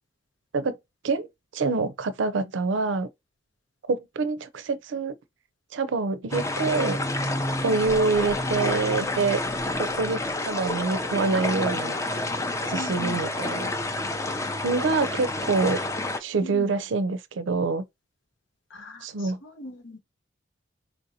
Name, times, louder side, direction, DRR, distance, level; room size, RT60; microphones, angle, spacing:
voice 1, 1.5-3.1 3.9-5.2 5.7-7.0 7.6-9.4 9.8-12.0 12.7-13.7 14.6-15.8 16.2-17.8 19.0-19.4, right 4 dB, 75° right, 0.4 m, -26 dB
sound 1, 6.3-16.2, left 2 dB, 15° left, 0.4 m, -29 dB
voice 2, 12.7-13.2 16.4-16.7 18.7-20.0, left 2 dB, 85° left, 0.9 m, -39 dB
4.3 x 2.7 x 2.6 m
head